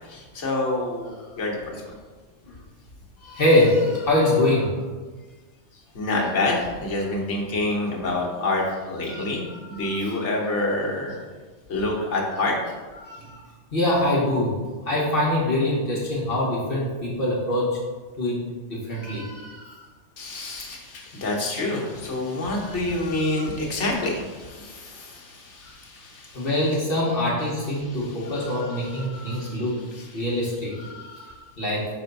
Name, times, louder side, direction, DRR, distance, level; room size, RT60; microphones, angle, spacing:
voice 1, 0.1-1.7 5.9-11.2 11.7-12.5 20.2-26.5 29.3-29.6 29.9-30.1, left 2 dB, 75° left, -1 dB, 1.5 m, -27 dB
voice 2, 3.2-4.7 9.0-10.2 13.0-13.4 13.7-17.8 18.2-18.4 18.7-19.9 22.6-23.5 25.6-25.7 26.3-29.8 30.1-31.9, left 1 dB, 55° left, -6 dB, 1.5 m, -25 dB
5.6 x 3.4 x 5.3 m, 1.4 s
omnidirectional pair, 1.2 m